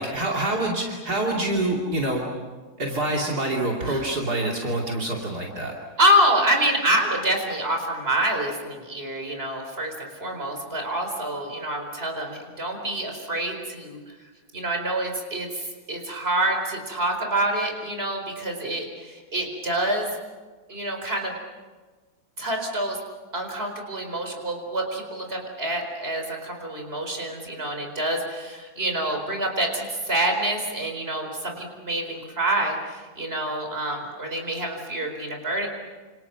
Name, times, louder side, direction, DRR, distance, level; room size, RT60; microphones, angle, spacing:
voice 1, 0.0-2.2 2.8-5.7, right 1 dB, 60° right, -1 dB, 3.4 m, -26 dB
voice 2, 6.0-14.0 14.5-20.1 20.7-21.3 22.4-23.0 23.3-35.7, right 1 dB, 35° right, 3 dB, 4.7 m, -26 dB
29.0 x 27.5 x 6.0 m, 1.4 s
omnidirectional pair, 1.9 m